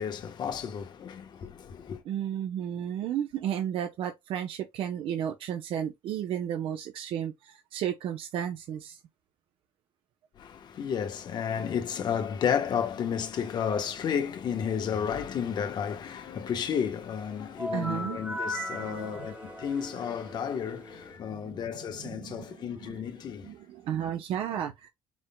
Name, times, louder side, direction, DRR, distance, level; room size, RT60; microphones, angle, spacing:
voice 1, 0.0-2.0 10.4-23.5, left 7 dB, 50° left, 1.2 m, -32 dB
voice 2, 2.0-9.0 17.7-18.3 18.7-19.3 21.3-23.1 23.4-24.9, right 10 dB, 70° right, 0.8 m, -33 dB
sound 1, 17.6-21.2, left 1 dB, 15° right, 1.6 m, -38 dB
4.9 x 3.8 x 2.3 m
cardioid pair, 125°, 9 cm